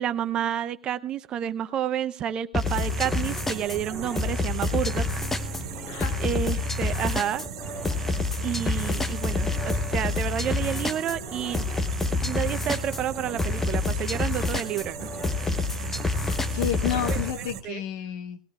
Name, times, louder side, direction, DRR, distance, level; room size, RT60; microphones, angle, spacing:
voice 1, 0.0-5.1 6.2-7.4 8.4-11.7 12.2-15.0 17.1-17.2 17.6-17.8, right 10 dB, 30° right, 11 dB, 0.7 m, -30 dB
sound 1, 2.5-17.3, left 3 dB, 10° left, 0.9 m, -28 dB
sound 2, 2.6-17.6, right 8 dB, 65° right, 1.7 m, -39 dB
voice 2, 5.9-6.2 16.3-18.4, left 10 dB, 50° left, 8 dB, 1.3 m, -31 dB
19.5 x 16.0 x 2.4 m, 0.39 s
figure-of-eight pair, 100°, 3 cm